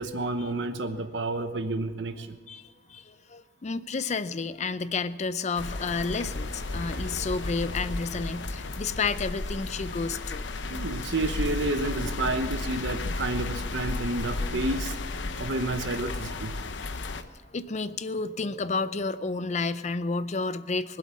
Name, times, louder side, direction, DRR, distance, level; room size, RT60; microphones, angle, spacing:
voice 1, 0.0-2.4 10.7-15.0 15.4-16.5, right 2 dB, 75° right, 8 dB, 1.0 m, -30 dB
voice 2, 2.5-10.4 16.9-21.0, left 4 dB, 40° left, 15 dB, 0.5 m, -31 dB
sound 1, 5.5-17.2, left 3 dB, 75° left, 0.8 m, -34 dB
sound 2, 5.9-14.8, equal, 55° right, 1.3 m, -44 dB
21.0 x 8.0 x 7.3 m, 1.4 s
head